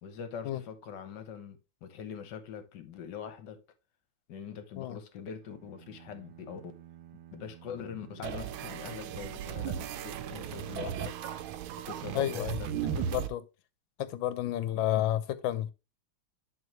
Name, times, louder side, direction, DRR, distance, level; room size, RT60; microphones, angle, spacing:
voice 1, 0.0-3.6 4.3-6.7 7.3-11.3 11.9-12.7, left 7 dB, 65° left, 1.4 m, -43 dB
sound 1, 5.4-9.8, right 12 dB, 70° right, 1.3 m, -54 dB
sound 2, 8.2-13.3, right 9 dB, 90° right, 1.5 m, -36 dB
voice 2, 12.1-12.6 13.0-13.4 14.0-15.7, left 12 dB, 80° left, 1.3 m, -31 dB
10.5 x 3.6 x 3.1 m
omnidirectional pair, 2.2 m